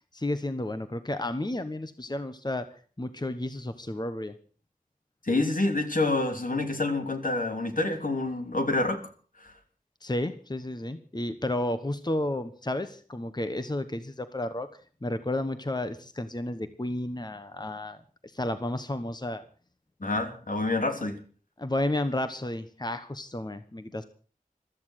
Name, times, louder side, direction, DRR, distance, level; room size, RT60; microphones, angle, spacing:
voice 1, 0.1-2.7 3.0-4.3 10.0-14.7 15.0-18.0 18.2-19.4 21.6-24.0, left 1 dB, 30° left, 10 dB, 1.1 m, -32 dB
voice 2, 5.2-9.1 9.4-9.5 20.0-21.2, left 2 dB, 75° left, 5 dB, 3.2 m, -27 dB
15.0 x 13.5 x 6.5 m, 0.41 s
wide cardioid pair, 55°, 14 cm